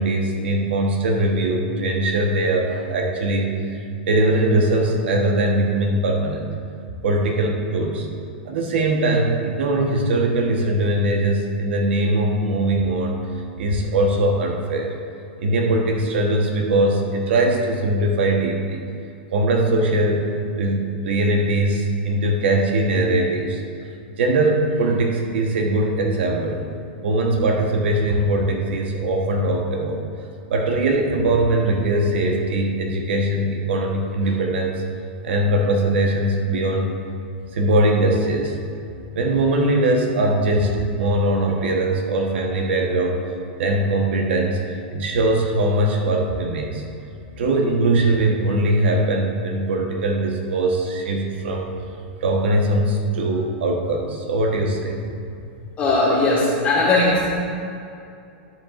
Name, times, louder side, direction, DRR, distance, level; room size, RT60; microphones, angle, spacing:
voice 1, 0.0-3.8 4.1-6.5 7.0-8.1 8.4-13.1 13.6-14.9 15.4-18.8 19.3-20.2 20.5-23.6 24.2-26.6 27.0-30.0 30.5-34.8 35.2-36.9 37.5-38.6 39.1-43.2 43.6-44.6 44.9-46.8 47.4-51.7 52.2-55.0, right 1 dB, 75° right, 1 dB, 1.2 m, -21 dB
voice 2, 55.8-57.4, left 2 dB, 25° left, -8 dB, 1.7 m, -18 dB
13.0 x 7.5 x 2.5 m, 2.6 s
hypercardioid pair, 145°, 6 cm